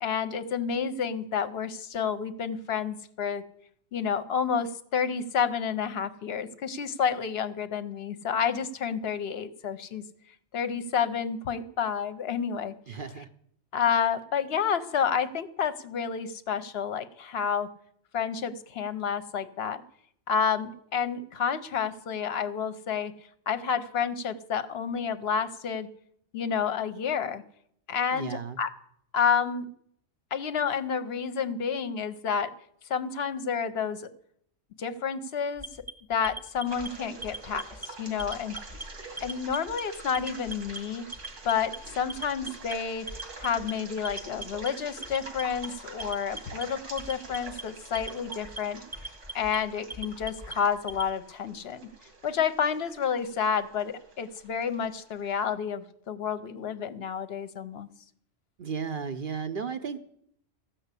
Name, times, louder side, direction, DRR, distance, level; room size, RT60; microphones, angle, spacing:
voice 1, 0.0-3.4 3.9-10.0 10.5-12.7 13.7-17.7 18.1-19.8 20.3-23.1 23.5-25.9 26.3-27.4 27.9-28.7 29.1-29.7 30.3-32.5 32.9-34.1 34.8-35.7 36.1-38.6 39.2-41.0 41.4-43.1 43.4-48.8 49.3-51.8 52.2-57.9, left 7 dB, 60° left, 12 dB, 0.9 m, -30 dB
voice 2, 12.9-13.3 28.1-28.6 58.6-60.0, right 6 dB, 50° right, 9 dB, 0.8 m, -34 dB
Alarm, 35.6-36.9 37.2-37.9 38.2-38.8 39.2-39.8 40.1-40.8 41.1-41.8 42.1-42.7 43.1-43.7 44.0-44.7 45.0-45.7 46.0-46.6 47.0-47.6 47.9-48.6 48.9-49.6 49.9-51.1, right 2 dB, 15° right, 0.8 m, -39 dB
sound 1, 36.7-55.5, right 3 dB, 85° right, 2.2 m, -46 dB
14.0 x 5.9 x 8.2 m, 0.69 s
omnidirectional pair, 1.2 m